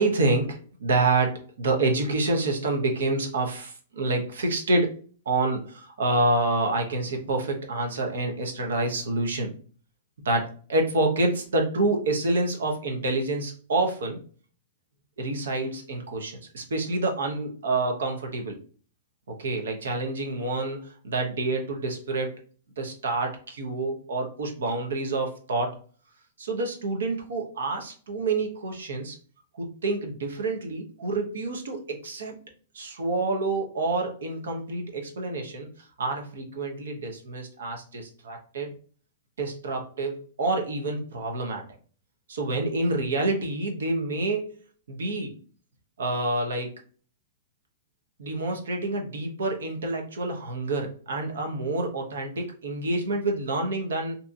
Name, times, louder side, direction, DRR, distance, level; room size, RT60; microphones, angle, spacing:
voice 1, 0.0-4.9 5.3-9.5 10.2-14.2 15.2-18.6 19.3-22.3 22.8-25.8 26.4-29.2 29.5-32.4 32.7-35.7 36.0-38.8 39.4-41.6 42.3-44.5 44.9-45.3 46.0-46.8 48.2-54.2, right 2 dB, 90° right, 2 dB, 0.7 m, -27 dB
2.7 x 2.4 x 2.6 m, 0.41 s
hypercardioid pair, 140°, 0 cm